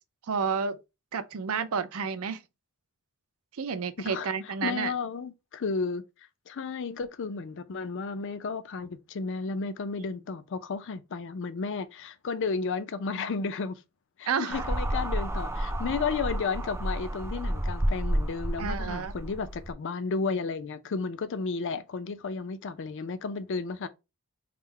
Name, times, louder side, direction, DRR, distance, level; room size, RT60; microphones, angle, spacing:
voice 1, 0.3-0.8 1.1-2.4 3.5-4.9 14.3-14.6 18.6-19.1, right 6 dB, 70° right, 0.5 m, -30 dB
voice 2, 4.0-6.0 6.5-13.8 14.2-23.9, left 4 dB, 60° left, 0.4 m, -33 dB
sound 1, 14.5-19.7, right 1 dB, 10° right, 0.3 m, -30 dB
3.7 x 2.1 x 4.3 m
head